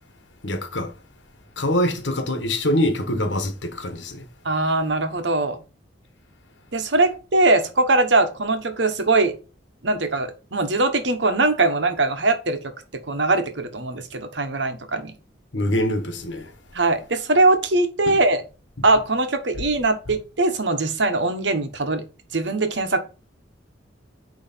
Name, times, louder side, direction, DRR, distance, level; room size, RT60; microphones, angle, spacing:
voice 1, 0.4-1.0 1.6-4.3 15.5-16.5 18.1-18.2, left 1 dB, 80° left, 1.3 m, -24 dB
voice 2, 4.4-5.6 6.7-9.3 9.8-12.6 13.1-15.1 16.7-18.4 18.8-22.0 22.3-23.0, right 2 dB, 75° right, 1.2 m, -21 dB
9.0 x 3.2 x 4.4 m
head